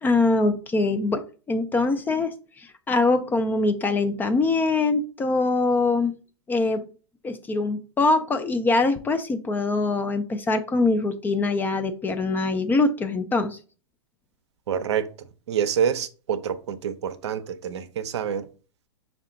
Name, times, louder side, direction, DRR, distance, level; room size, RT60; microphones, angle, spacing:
voice 1, 0.0-6.1 6.5-6.9 7.2-13.6, left 3 dB, 10° left, 0.3 m, -23 dB
voice 2, 14.7-18.5, right 8 dB, 65° right, 0.5 m, -27 dB
5.6 x 2.2 x 3.7 m
hypercardioid pair, 105°, 16 cm